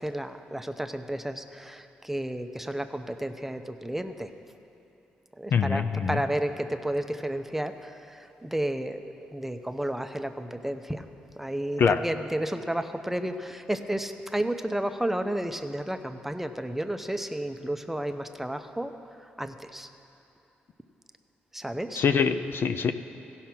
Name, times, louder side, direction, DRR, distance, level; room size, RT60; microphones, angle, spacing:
voice 1, 0.0-4.3 5.4-11.0 11.4-18.9 19.4-19.9 21.5-22.0, right 1 dB, 5° right, 8 dB, 0.6 m, -32 dB
voice 2, 5.5-6.2 11.8-12.0 22.0-22.9, left 6 dB, 60° left, 9 dB, 0.4 m, -24 dB
15.5 x 5.7 x 6.0 m, 2.8 s
supercardioid pair, 55°, 4 cm